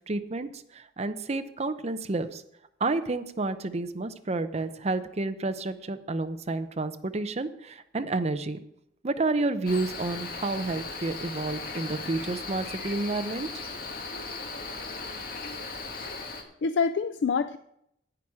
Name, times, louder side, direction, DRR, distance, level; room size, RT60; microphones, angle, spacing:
voice 1, 0.1-2.4 2.8-8.6 9.0-13.5, right 2 dB, 40° right, 9 dB, 0.7 m, -30 dB
Cricket, 9.6-16.4, left 3 dB, 55° left, 1.7 m, -37 dB
voice 2, 16.2-17.6, left 5 dB, 85° left, 12 dB, 0.4 m, -27 dB
10.5 x 8.7 x 4.8 m, 0.75 s
head